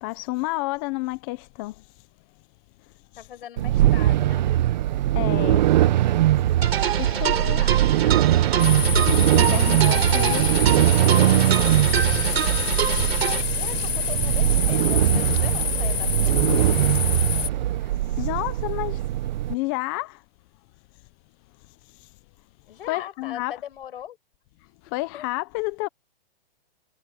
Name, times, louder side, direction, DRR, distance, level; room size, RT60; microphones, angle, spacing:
voice 1, 0.0-1.9 5.1-5.7 7.0-7.6 9.3-10.5 17.8-19.0 19.5-20.2 21.9-22.1 22.9-23.5 24.9-25.9, left 22 dB, 20° left, 0.6 m, -30 dB
voice 2, 3.2-4.5 7.0-8.3 13.5-17.0 22.7-24.2 25.1-25.2, left 10 dB, 65° left, 7.2 m, -40 dB
sound 1, 3.6-19.5, right 13 dB, 45° right, 0.7 m, -21 dB
sound 2, 6.6-13.4, right 8 dB, 80° right, 3.7 m, -26 dB
sound 3, 8.6-17.5, left 8 dB, 85° left, 3.9 m, -27 dB
hypercardioid pair, 155°, 30 cm